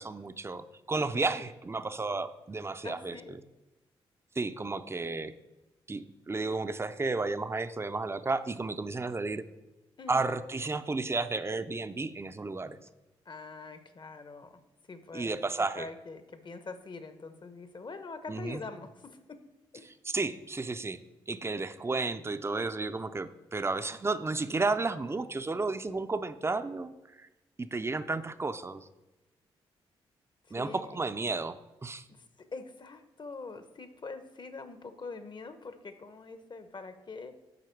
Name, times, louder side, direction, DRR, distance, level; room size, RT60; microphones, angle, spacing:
voice 1, 0.0-3.4 4.4-5.3 5.9-9.4 10.1-12.8 15.1-15.9 18.3-18.6 20.1-21.0 21.3-26.9 27.6-28.8 30.5-32.0, right 3 dB, 20° right, 11 dB, 0.5 m, -32 dB
voice 2, 2.8-3.4 10.0-10.3 13.3-14.6 14.9-15.3 15.7-19.4 19.7-19.9 30.6-31.0 32.1-37.4, left 4 dB, 40° left, 9 dB, 0.9 m, -44 dB
7.9 x 4.8 x 4.6 m, 1.0 s
hypercardioid pair, 45°, 12 cm